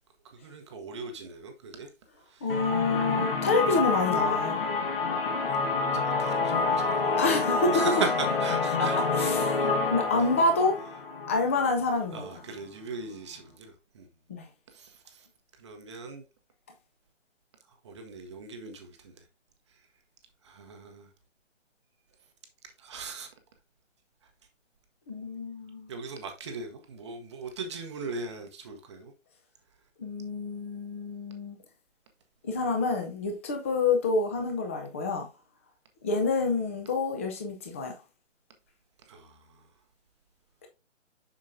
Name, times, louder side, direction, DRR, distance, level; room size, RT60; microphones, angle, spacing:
voice 1, 0.2-1.9 2.2-2.6 5.9-7.1 7.7-9.7 12.1-14.1 14.7-15.3 15.5-16.2 17.8-19.3 19.7-19.9 20.4-21.1 22.6-23.3 25.9-29.1 39.0-39.7, right 4 dB, 25° right, 0.8 m, -39 dB
voice 2, 2.4-4.6 7.2-7.8 8.8-10.8 11.3-12.3 14.3-14.5 25.1-25.9 30.0-31.6 32.4-35.3 36.0-37.9, left 3 dB, 10° left, 0.6 m, -28 dB
sound 1, 2.5-12.2, left 4 dB, 50° left, 1.5 m, -28 dB
7.4 x 6.3 x 2.6 m
figure-of-eight pair, 145°, 37 cm